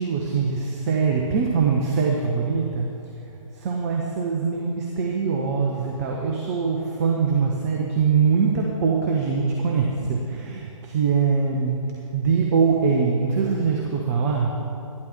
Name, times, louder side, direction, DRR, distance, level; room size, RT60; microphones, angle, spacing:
voice 1, 0.0-2.9 3.6-11.9 12.1-14.5, right 5 dB, 30° right, 0 dB, 1.0 m, -23 dB
12.0 x 12.0 x 4.5 m, 2.6 s
figure-of-eight pair, 130°, 18 cm